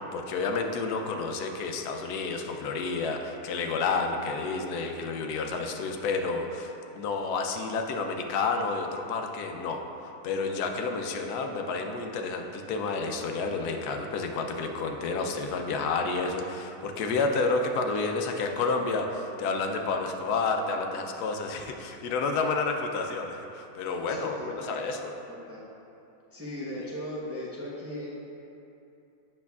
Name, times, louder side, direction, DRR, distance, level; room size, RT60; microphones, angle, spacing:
voice 1, 0.1-25.1, left 4 dB, 90° left, 4 dB, 1.1 m, -30 dB
voice 2, 24.1-24.8 25.3-25.6 26.3-28.1, left 1 dB, 15° right, -7 dB, 0.7 m, -38 dB
8.4 x 6.4 x 2.3 m, 2.8 s
omnidirectional pair, 1.6 m